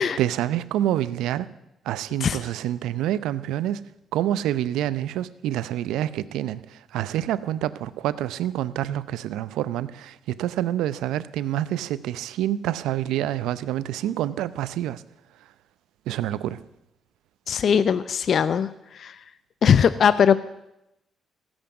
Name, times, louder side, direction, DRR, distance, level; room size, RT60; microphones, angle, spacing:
voice 1, 0.0-1.5 1.8-3.8 4.1-15.0 16.1-16.6, right 12 dB, 85° right, 16 dB, 0.6 m, -27 dB
voice 2, 17.5-19.2 19.6-20.4, left 7 dB, 60° left, 15 dB, 0.6 m, -20 dB
16.0 x 8.0 x 9.4 m, 0.87 s
supercardioid pair, 70°, 0 cm